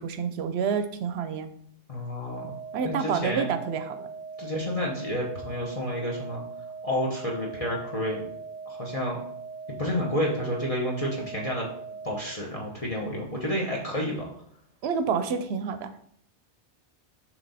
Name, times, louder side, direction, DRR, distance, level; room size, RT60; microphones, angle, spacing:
voice 1, 0.0-1.5 2.7-4.1 14.8-16.0, right 6 dB, 70° right, 9 dB, 0.8 m, -28 dB
voice 2, 1.9-2.5 2.8-3.5 4.4-6.4 6.8-8.3 8.7-9.2 9.8-11.7 12.0-14.2, equal, 35° left, -2 dB, 1.0 m, -30 dB
sound 1, 2.3-12.3, right 5 dB, 45° right, 0.8 m, -40 dB
7.3 x 3.2 x 4.0 m, 0.66 s
omnidirectional pair, 1.2 m